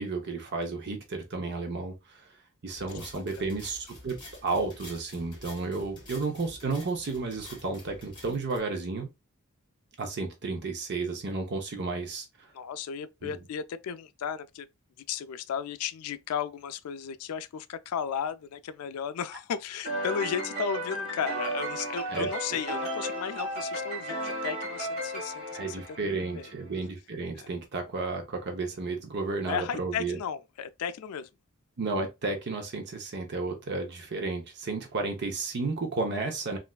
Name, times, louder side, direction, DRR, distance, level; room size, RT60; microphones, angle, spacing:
voice 1, 0.0-2.3 2.6-9.1 10.0-12.5 13.2-13.4 22.1-22.3 25.5-30.2 31.8-36.6, right 3 dB, 50° right, 0.7 m, -32 dB
sound 1, 2.7-8.6, left 1 dB, 25° left, 1.6 m, -49 dB
voice 2, 12.5-14.7 15.1-26.0 26.3-26.5 27.4-27.5 29.5-31.3, left 7 dB, 90° left, 0.3 m, -35 dB
sound 2, 19.9-26.5, right 1 dB, 30° right, 1.8 m, -34 dB
3.2 x 2.5 x 2.2 m
head